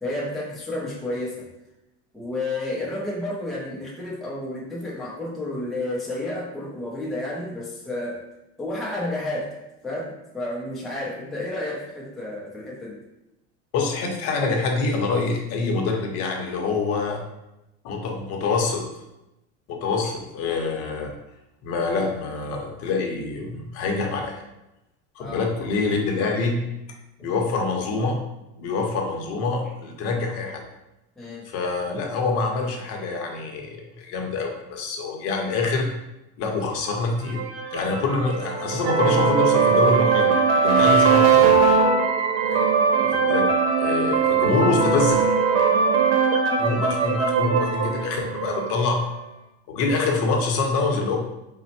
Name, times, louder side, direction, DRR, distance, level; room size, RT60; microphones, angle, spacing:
voice 1, 0.0-1.5 2.1-8.2 8.6-9.5 9.8-13.0 25.2-25.5 31.2-31.4 42.4-42.7, left 1 dB, ahead, -5 dB, 0.4 m, -31 dB
voice 2, 13.7-17.2 17.8-18.8 19.7-21.1 21.6-24.4 25.2-26.6 27.2-28.2 28.6-30.6 31.4-35.9 36.4-37.4 37.7-40.4 40.6-41.5 43.0-43.5 43.8-45.2 46.6-49.0 49.7-51.2, left 3 dB, 50° left, 2 dB, 0.7 m, -25 dB
sound 1, 37.3-49.1, right 5 dB, 90° right, 0.8 m, -20 dB
4.1 x 2.1 x 4.1 m, 0.93 s
cardioid pair, 160°, 31 cm